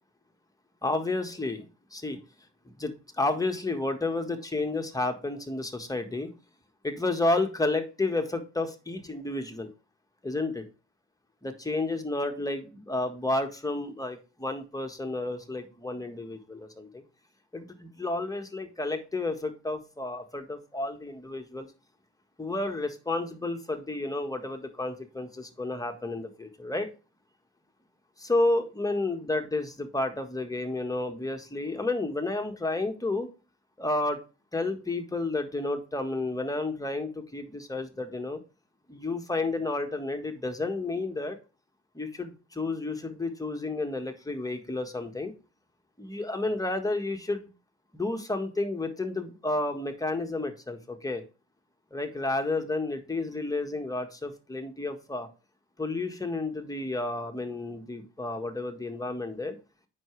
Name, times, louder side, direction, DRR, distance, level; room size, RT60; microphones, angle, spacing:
voice 1, 0.8-2.2 2.8-6.3 6.8-9.7 10.2-10.6 11.4-17.0 17.5-21.7 22.4-26.9 28.2-33.3 33.8-34.2 34.5-38.4 38.9-41.4 41.9-45.3 46.0-47.5 47.9-51.2 51.9-55.3 55.8-59.6, left 2 dB, 10° left, 5 dB, 1.5 m, -31 dB
8.7 x 5.9 x 3.3 m, 0.32 s
cardioid pair, 90°, 30 cm